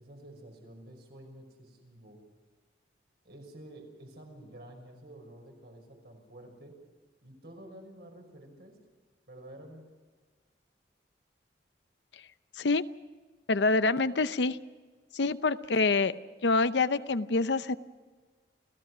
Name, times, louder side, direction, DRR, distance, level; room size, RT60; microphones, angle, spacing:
voice 1, 0.0-2.2 3.2-6.7 7.2-8.8 9.3-9.8, right 1 dB, 65° right, 2 dB, 5.8 m, -50 dB
voice 2, 13.5-14.6 15.1-17.8, left 3 dB, 80° left, 13 dB, 0.7 m, -26 dB
29.5 x 16.0 x 6.2 m, 1.4 s
head